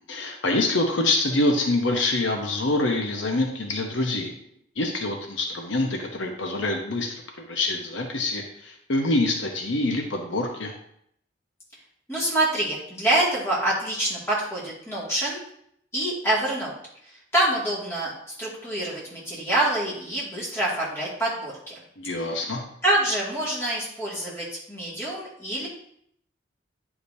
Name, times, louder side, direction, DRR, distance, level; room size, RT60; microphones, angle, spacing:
voice 1, 0.1-4.3 4.8-10.7 22.0-22.6, left 2 dB, 75° left, 3 dB, 0.9 m, -25 dB
voice 2, 12.1-15.4 15.9-16.8 17.3-18.1 18.4-21.8 22.2-22.3 22.8-25.7, right 1 dB, 15° left, -6 dB, 2.1 m, -26 dB
9.8 x 5.0 x 2.7 m, 0.70 s
head